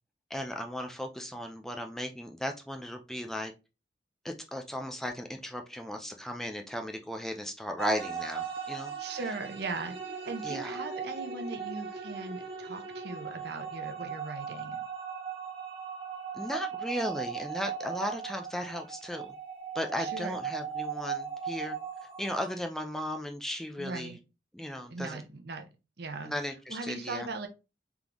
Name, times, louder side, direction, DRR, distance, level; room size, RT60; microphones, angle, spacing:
voice 1, 0.3-3.5 4.2-9.2 10.4-10.8 16.3-19.4 19.7-21.8 22.2-24.2 24.5-25.2 26.2-27.3, equal, ahead, 0.4 m, -36 dB
sound 1, 7.8-22.5, right 7 dB, 30° right, 1.3 m, -38 dB
voice 2, 9.0-14.8 20.0-20.4 23.8-24.2 24.9-25.7 26.0-26.3 26.7-27.5, right 3 dB, 65° right, 0.8 m, -39 dB
3.7 x 3.5 x 2.9 m
head